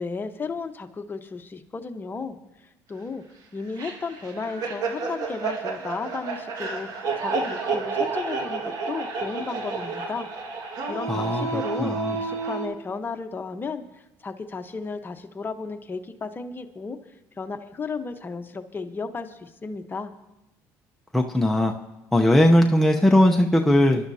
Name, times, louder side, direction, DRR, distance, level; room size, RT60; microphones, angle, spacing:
voice 1, 0.0-2.4 2.9-3.2 3.5-10.3 10.9-17.0 17.4-20.1, left 4 dB, 30° left, 6 dB, 1.1 m, -34 dB
sound 1, 3.8-12.7, right 4 dB, 60° right, 1.9 m, -30 dB
voice 2, 11.1-12.2 21.1-21.7 22.1-24.1, left 1 dB, 5° left, 1 dB, 0.8 m, -19 dB
23.5 x 12.0 x 2.8 m, 0.94 s
supercardioid pair, 85°, 7 cm